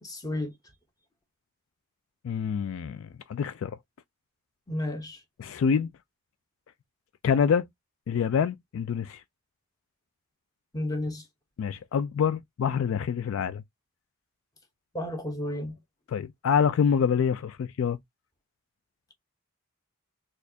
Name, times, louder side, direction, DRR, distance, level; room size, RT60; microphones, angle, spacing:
voice 1, 0.0-0.5 4.7-5.2 10.7-11.2 14.9-15.8, left 1 dB, 15° left, 0.9 m, -32 dB
voice 2, 2.2-3.8 5.4-5.9 7.2-7.7 8.1-9.2 11.6-13.6 16.1-18.0, left 7 dB, 65° left, 0.3 m, -26 dB
4.2 x 2.4 x 2.7 m
head